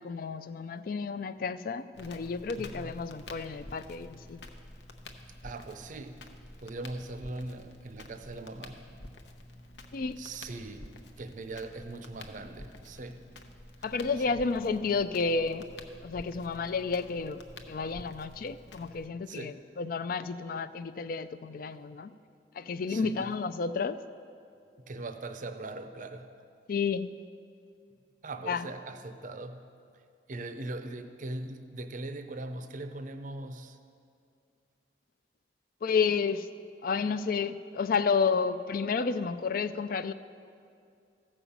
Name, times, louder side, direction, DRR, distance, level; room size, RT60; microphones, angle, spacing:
voice 1, 0.0-4.4 9.9-10.2 13.8-15.7 16.0-17.4 17.7-22.1 22.6-24.0 26.7-27.2 28.5-28.7 35.8-36.5 36.8-40.1, left 5 dB, 55° left, 13 dB, 0.4 m, -31 dB
Crackle, 1.9-19.1, left 1 dB, 80° left, 0.9 m, -49 dB
voice 2, 2.6-3.0 5.4-6.2 6.6-8.8 10.2-13.2 14.2-14.4 19.3-19.6 22.9-23.3 24.8-26.3 28.2-29.7 30.3-33.8, right 2 dB, 45° right, 8 dB, 0.6 m, -40 dB
15.0 x 5.5 x 7.1 m, 2.4 s
head